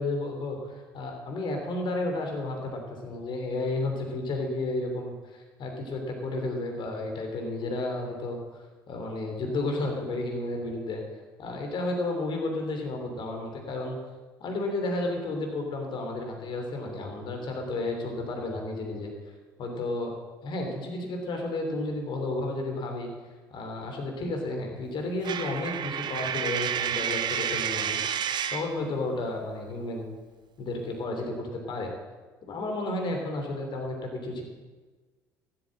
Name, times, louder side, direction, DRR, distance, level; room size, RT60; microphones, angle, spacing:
voice 1, 0.0-8.4 8.9-11.0 11.4-14.0 14.4-19.1 19.6-20.1 20.4-23.1 23.5-28.1 28.5-30.1 30.6-31.9 32.5-34.4, left 2 dB, 50° left, 3 dB, 3.2 m, -32 dB
Coin (dropping), 25.2-28.8, right 8 dB, 45° right, 0.9 m, -30 dB
13.0 x 7.9 x 7.7 m, 1.3 s
hypercardioid pair, 60°, 10 cm